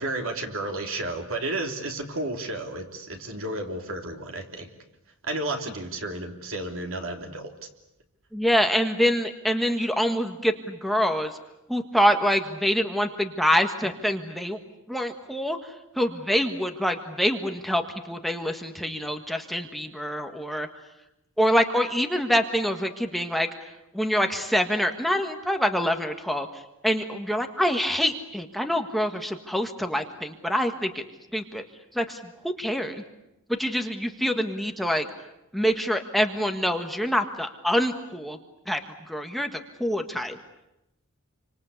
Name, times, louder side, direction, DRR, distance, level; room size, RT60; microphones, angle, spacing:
voice 1, 0.0-4.7 5.2-7.5, right 2 dB, 65° right, 4 dB, 3.3 m, -32 dB
voice 2, 8.3-11.3 11.7-14.6 14.9-15.6 16.0-20.7 21.4-23.7 23.9-26.5 26.8-31.0 31.3-31.6 31.9-33.0 33.6-35.1 35.5-38.4 38.7-38.8 39.1-40.4, equal, ahead, 4 dB, 1.5 m, -25 dB
28.0 x 25.5 x 8.3 m, 0.89 s
head